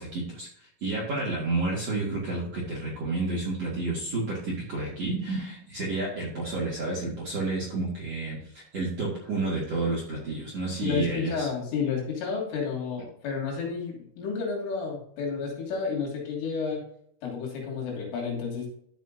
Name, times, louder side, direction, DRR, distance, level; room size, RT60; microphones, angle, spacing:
voice 1, 0.0-11.5, right 2 dB, 50° right, -5 dB, 2.0 m, -30 dB
voice 2, 10.8-16.8 17.2-18.7, left 5 dB, 75° left, -1 dB, 5.1 m, -31 dB
11.5 x 7.4 x 2.7 m, 0.69 s
omnidirectional pair, 5.9 m